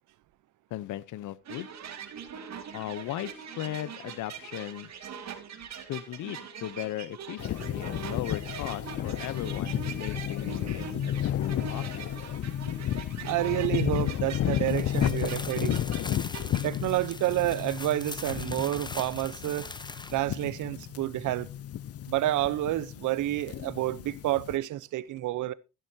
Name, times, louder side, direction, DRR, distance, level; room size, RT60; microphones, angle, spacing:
voice 1, 0.7-1.7 2.7-4.9 5.9-12.2, left 14 dB, 80° left, 0.8 m, -37 dB
sound 1, 1.4-16.6, right 7 dB, 60° right, 2.3 m, -42 dB
sound 2, 7.4-24.6, left 11 dB, 50° left, 0.6 m, -32 dB
voice 2, 13.2-15.8 16.6-19.7 20.1-21.5 22.1-25.5, right 15 dB, 80° right, 0.8 m, -29 dB
sound 3, 14.6-20.5, left 3 dB, 15° left, 1.0 m, -42 dB
14.5 x 10.5 x 2.8 m
cardioid pair, 90°, 30 cm